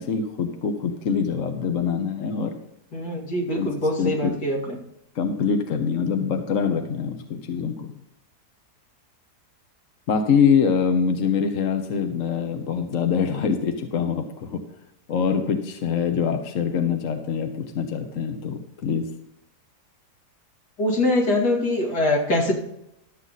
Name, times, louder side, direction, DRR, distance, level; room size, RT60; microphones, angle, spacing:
voice 1, 0.0-2.6 3.5-3.7 4.0-4.4 5.1-7.9 10.1-14.6 15.1-19.1, left 6 dB, 55° left, 5 dB, 1.2 m, -24 dB
voice 2, 2.9-4.8 20.8-22.5, left 1 dB, 75° left, 0 dB, 2.7 m, -23 dB
12.5 x 7.7 x 4.1 m, 0.82 s
omnidirectional pair, 1.8 m